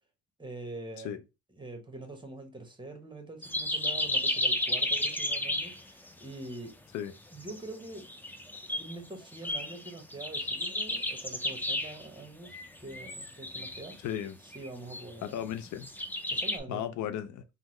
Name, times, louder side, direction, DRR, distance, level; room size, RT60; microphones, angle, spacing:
voice 1, 0.4-1.2 1.5-6.7 7.3-8.1 8.6-14.0 14.4-15.5 16.3-17.1, right 2 dB, 15° right, 0.9 m, -44 dB
sound 1, 3.4-5.8 6.1-6.2 6.5-6.6 7.4-9.0 9.3-12.1 12.4-14.2 14.5-15.3 15.7-16.6, left 1 dB, 5° left, 0.4 m, -32 dB
voice 2, 14.0-14.4 15.2-15.9 16.7-17.4, left 10 dB, 70° left, 0.4 m, -35 dB
3.6 x 2.1 x 3.0 m
cardioid pair, 90°, 30 cm